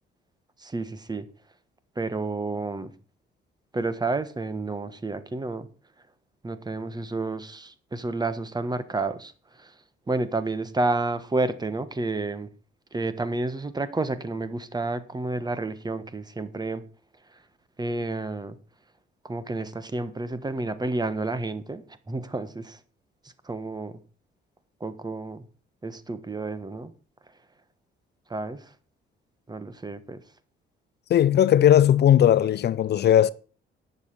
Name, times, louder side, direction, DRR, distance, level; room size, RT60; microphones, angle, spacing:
voice 1, 0.6-1.3 2.0-2.9 3.7-5.7 6.4-9.3 9.6-9.7 10.1-12.5 12.9-16.8 17.8-18.6 19.2-22.8 23.4-23.9 24.8-25.4 25.8-26.9 28.3-28.7 29.5-30.2, right 2 dB, 20° right, 1.3 m, -30 dB
voice 2, 31.1-33.3, left 10 dB, 55° left, 0.5 m, -18 dB
10.5 x 6.8 x 6.7 m
cardioid pair, 90°, 20 cm